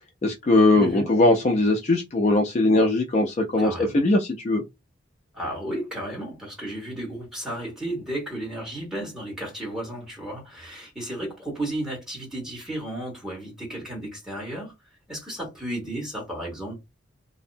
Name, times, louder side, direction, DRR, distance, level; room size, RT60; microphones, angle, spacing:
voice 1, 0.2-4.6, left 2 dB, 35° left, 0.3 m, -20 dB
voice 2, 0.7-1.1 3.6-4.2 5.3-14.7 15.1-16.7, right 1 dB, 5° right, 1.2 m, -33 dB
2.6 x 2.1 x 2.5 m
head